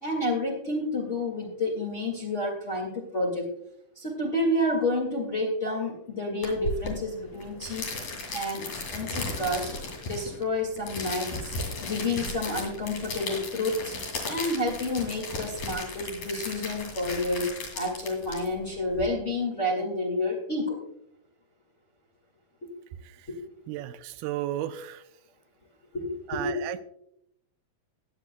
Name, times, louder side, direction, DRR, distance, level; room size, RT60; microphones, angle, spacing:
voice 1, 0.0-3.5 3.9-7.8 8.3-9.7 10.0-11.5 11.8-13.9 14.2-20.8 23.3-23.4 25.9-26.7, left 1 dB, 30° left, -2 dB, 1.5 m, -29 dB
sound 1, 6.4-19.0, left 2 dB, 55° left, 3.9 m, -36 dB
voice 2, 23.7-25.0 26.3-26.8, right 13 dB, 85° right, 10 dB, 2.4 m, -33 dB
21.0 x 8.3 x 2.2 m, 0.74 s
omnidirectional pair, 4.3 m